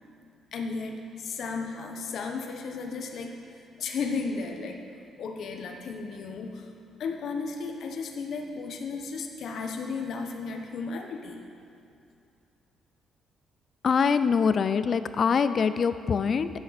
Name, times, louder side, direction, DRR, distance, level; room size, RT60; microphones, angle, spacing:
voice 1, 0.5-3.3 3.8-4.8 5.2-6.7 7.0-11.4, left 4 dB, 70° left, 3 dB, 1.2 m, -34 dB
voice 2, 13.8-16.5, left 6 dB, 50° left, 12 dB, 0.5 m, -24 dB
12.5 x 9.5 x 4.2 m, 2.5 s
cardioid pair, 90°, 0 cm